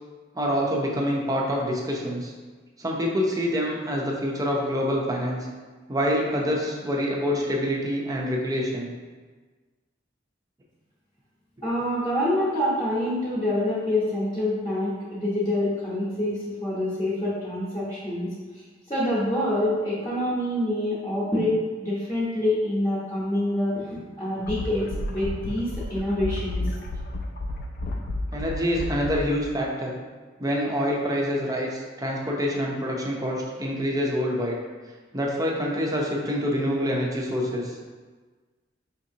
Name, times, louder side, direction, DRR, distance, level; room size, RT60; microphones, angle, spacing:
voice 1, 0.3-2.3 2.8-5.5 5.9-8.9 28.3-29.9 30.4-34.6 35.1-37.7, equal, 20° right, -2 dB, 0.5 m, -26 dB
voice 2, 11.6-26.6, left 1 dB, 20° left, -10 dB, 0.8 m, -26 dB
sound 1, 24.4-29.2, left 1 dB, 55° left, 0.4 m, -32 dB
5.1 x 2.8 x 2.7 m, 1.4 s
head